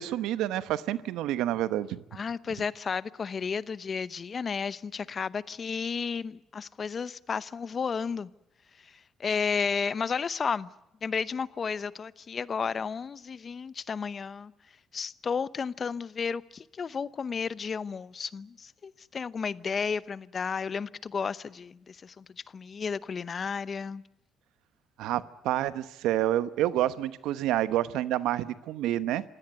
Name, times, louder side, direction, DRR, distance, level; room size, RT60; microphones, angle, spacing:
voice 1, 0.0-2.0 25.0-29.2, right 13 dB, 80° right, 1.0 m, -28 dB
voice 2, 2.1-8.3 8.8-10.7 11.0-14.5 14.9-22.3 22.5-24.0, left 6 dB, 45° left, 0.8 m, -33 dB
26.5 x 16.5 x 9.2 m
supercardioid pair, 65°, 0 cm